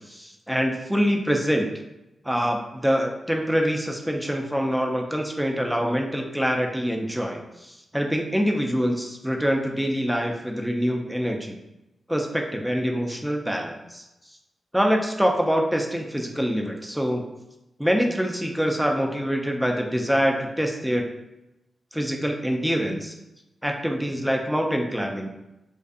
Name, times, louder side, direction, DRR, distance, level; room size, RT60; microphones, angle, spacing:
voice 1, 0.1-1.7 2.2-11.5 12.1-14.0 14.7-17.2 17.8-21.0 21.9-23.2 23.6-25.3, equal, 5° right, 2 dB, 0.4 m, -25 dB
2.4 x 2.4 x 2.4 m, 0.95 s
supercardioid pair, 40°, 0 cm